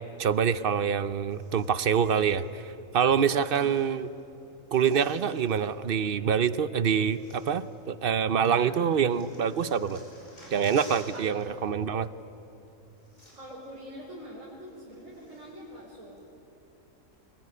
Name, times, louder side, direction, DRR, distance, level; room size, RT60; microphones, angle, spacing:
voice 1, 0.0-4.1 4.7-10.0 10.5-12.1, right 7 dB, 50° right, 14 dB, 0.8 m, -26 dB
sound 1, 1.3-2.4 3.2-4.2 4.5-5.7 6.6-6.7 7.0-8.2 8.5-11.5 11.7-11.9 12.7-12.8 13.0-13.7 14.1-14.2 14.7-15.7 16.2-16.3, equal, 50° left, 6.7 m, -52 dB
voice 2, 3.2-3.7 8.4-8.8 11.1-11.5 13.3-16.2, right 1 dB, 70° right, -4 dB, 4.4 m, -44 dB
24.5 x 21.5 x 9.8 m, 2.9 s
omnidirectional pair, 1.4 m